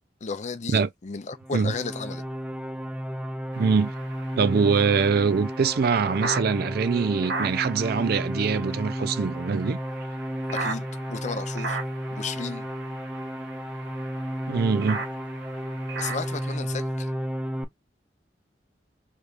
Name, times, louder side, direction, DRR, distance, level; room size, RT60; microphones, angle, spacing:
voice 1, 0.2-2.2 10.5-11.8 12.1-12.7 16.0-17.1, left 4 dB, 40° left, 0.6 m, -34 dB
sound 1, 1.4-17.6, equal, 5° right, 0.5 m, -33 dB
sound 2, 3.5-16.6, right 3 dB, 85° right, 1.2 m, -38 dB
voice 2, 3.6-3.9 4.4-9.8 14.5-15.0, right 5 dB, 60° right, 0.4 m, -23 dB
3.4 x 3.2 x 2.5 m
head